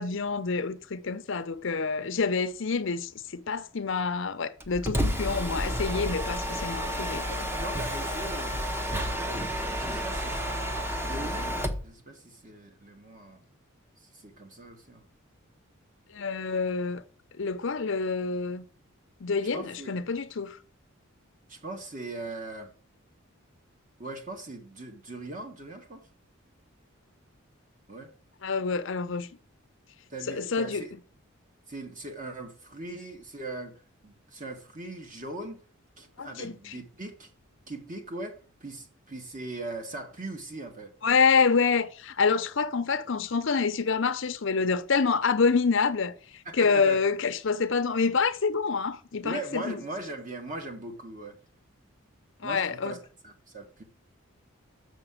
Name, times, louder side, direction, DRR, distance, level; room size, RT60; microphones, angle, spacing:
voice 1, 0.0-7.5 16.1-17.0 17.4-18.6 19.2-20.6 28.4-29.3 30.3-30.8 36.2-36.8 41.0-49.8 52.4-53.0, left 5 dB, 60° left, 0.7 m, -27 dB
Mechanisms, 4.6-11.9, equal, 10° right, 0.9 m, -31 dB
voice 2, 7.5-10.6 10.9-13.4 14.1-15.1 19.5-20.0 21.5-22.7 24.0-26.0 27.9-28.1 30.1-30.9 31.7-33.7 34.0-35.6 36.0-37.3 37.7-40.9 46.5-47.0 49.2-51.4 52.4-53.0 53.2-53.8, right 2 dB, 40° right, 1.9 m, -40 dB
7.0 x 5.9 x 7.6 m
head